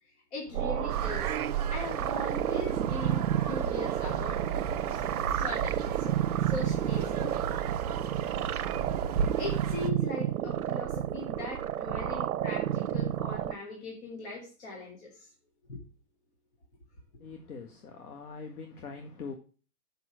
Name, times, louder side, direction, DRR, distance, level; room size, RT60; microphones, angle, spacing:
voice 1, 0.0-4.4 4.9-7.4 9.4-15.3 15.7-15.8, left 3 dB, 45° left, 2.9 m, -40 dB
sound 1, 0.5-13.5, right 11 dB, 65° right, 0.8 m, -31 dB
sound 2, 0.9-9.9, right 6 dB, 25° right, 0.5 m, -35 dB
voice 2, 17.2-19.3, left 5 dB, 70° left, 1.9 m, -43 dB
7.2 x 6.2 x 6.2 m
hypercardioid pair, 160°, 46 cm